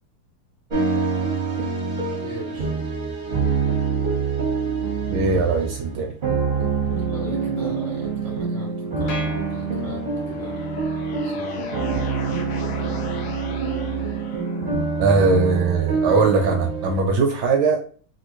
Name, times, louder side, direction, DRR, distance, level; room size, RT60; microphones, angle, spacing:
sound 1, 0.7-17.0, right 4 dB, 55° right, 0.5 m, -26 dB
voice 1, 2.2-2.7 6.8-9.1 9.5-10.0 10.3-10.6 11.2-11.6, left 2 dB, 70° left, -5 dB, 0.3 m, -38 dB
voice 2, 5.1-6.2 15.0-17.8, right 4 dB, 75° right, 3 dB, 1.0 m, -20 dB
sound 2, 9.1-10.4, left 1 dB, 50° left, 0.9 m, -37 dB
sound 3, 10.0-15.0, left 5 dB, 90° left, 0.8 m, -38 dB
3.4 x 2.5 x 2.9 m, 0.43 s
omnidirectional pair, 2.4 m